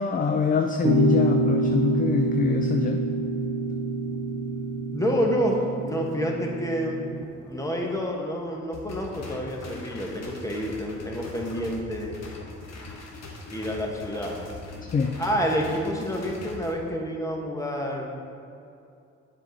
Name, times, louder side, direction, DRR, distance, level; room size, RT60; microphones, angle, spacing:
voice 1, 0.0-3.0 14.9-15.2, left 5 dB, 30° left, 5 dB, 0.4 m, -24 dB
sound 1, 0.8-7.2, right 2 dB, 50° right, 0.7 m, -27 dB
voice 2, 4.9-12.2 13.5-14.4 15.2-18.1, equal, 10° left, 0 dB, 1.1 m, -28 dB
sound 2, 8.7-16.7, left 2 dB, 60° left, 1.2 m, -41 dB
7.3 x 4.9 x 4.0 m, 2.5 s
cardioid pair, 90°, 30 cm